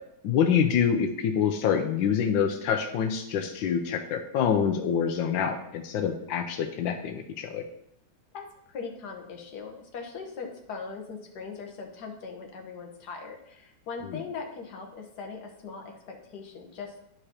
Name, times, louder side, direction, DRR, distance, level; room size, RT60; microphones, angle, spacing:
voice 1, 0.2-7.7, left 7 dB, 90° left, 5 dB, 1.4 m, -26 dB
voice 2, 8.3-16.9, left 5 dB, 60° left, 2 dB, 1.7 m, -40 dB
12.0 x 4.9 x 2.9 m, 0.76 s
omnidirectional pair, 2.0 m